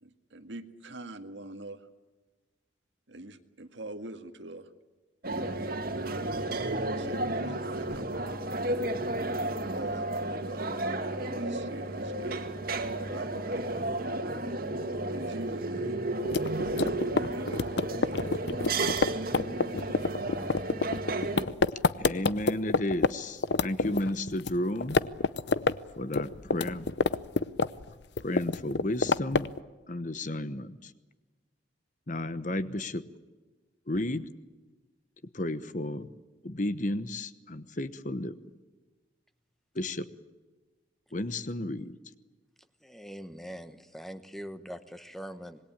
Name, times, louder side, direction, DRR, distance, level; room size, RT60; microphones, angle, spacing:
voice 1, 0.0-1.9 3.1-4.7 5.9-8.3 9.7-10.8 11.2-12.5 13.1-13.7 15.1-16.0 17.3-18.3, right 1 dB, 70° right, 8 dB, 1.9 m, -43 dB
sound 1, 5.2-21.4, right 2 dB, 50° right, 2.2 m, -32 dB
sound 2, 16.2-23.1 23.4-24.5 24.8-25.8 26.0-27.9 28.2-29.6, left 3 dB, 60° left, 0.7 m, -27 dB
voice 2, 22.0-25.0 26.0-26.9 28.2-29.5 29.9-30.9 32.1-33.0 33.9-34.2 35.3-36.1 36.4-38.3 39.7-40.1 41.1-42.0, left 1 dB, 40° left, 13 dB, 1.1 m, -32 dB
voice 3, 42.8-45.6, equal, ahead, 10 dB, 1.1 m, -42 dB
26.5 x 20.5 x 8.8 m, 1.3 s
head